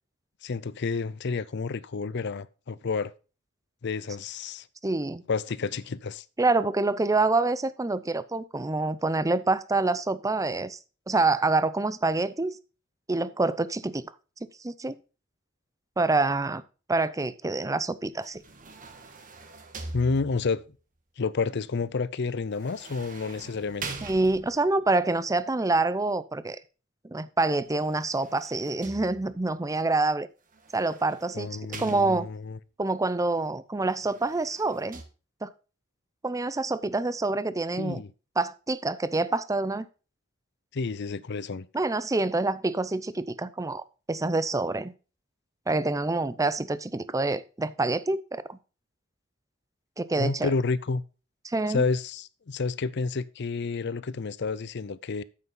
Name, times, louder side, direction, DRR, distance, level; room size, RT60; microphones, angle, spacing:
voice 1, 0.4-3.1 3.8-4.7 5.3-6.2 19.9-20.6 21.2-23.9 31.3-32.6 37.8-38.1 40.7-41.7 50.2-51.0 51.7-55.2, left 4 dB, 60° left, 0.6 m, -30 dB
voice 2, 4.8-5.2 6.4-10.8 11.1-12.6 13.1-14.0 14.6-15.0 16.0-16.6 16.9-18.4 24.0-26.6 27.1-30.3 30.7-31.5 31.8-32.3 32.8-35.0 35.4-35.5 36.2-38.0 38.4-39.9 41.7-44.9 45.7-48.6 50.0-50.5 51.4-51.8, right 3 dB, 15° right, 0.5 m, -26 dB
sound 1, 18.2-20.7 22.5-24.8 27.7-29.5 30.5-32.5 33.9-35.0, right 3 dB, 45° right, 1.4 m, -43 dB
9.4 x 8.1 x 3.8 m
head